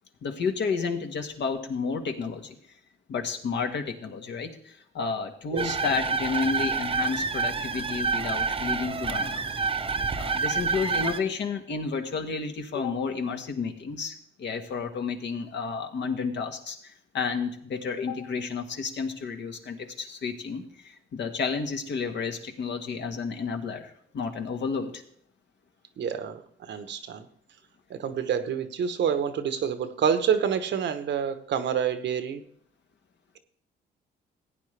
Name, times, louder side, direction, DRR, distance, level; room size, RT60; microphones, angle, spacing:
voice 1, 0.2-2.6 3.1-9.5 10.2-25.0, left 5 dB, 65° left, 1.6 m, -31 dB
sound 1, 5.6-11.2, right 5 dB, 25° right, 0.8 m, -28 dB
voice 2, 26.0-26.4 26.7-27.3 27.9-32.4, right 7 dB, 65° right, 1.0 m, -27 dB
16.0 x 9.1 x 3.3 m
cardioid pair, 90°, 20 cm